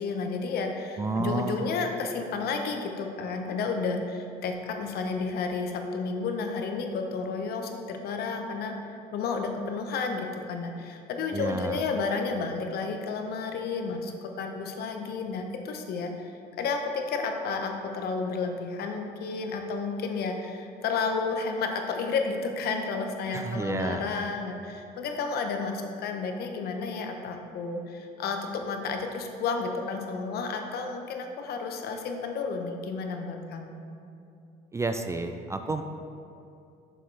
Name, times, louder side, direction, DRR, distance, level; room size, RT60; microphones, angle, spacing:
voice 1, 0.0-16.3 16.6-33.8, left 4 dB, 70° left, 4 dB, 0.8 m, -31 dB
voice 2, 1.0-1.6 11.3-11.8 23.3-24.1 34.7-35.8, right 3 dB, 15° right, 7 dB, 0.3 m, -30 dB
6.7 x 6.5 x 3.2 m, 2.6 s
cardioid pair, 110°, 17 cm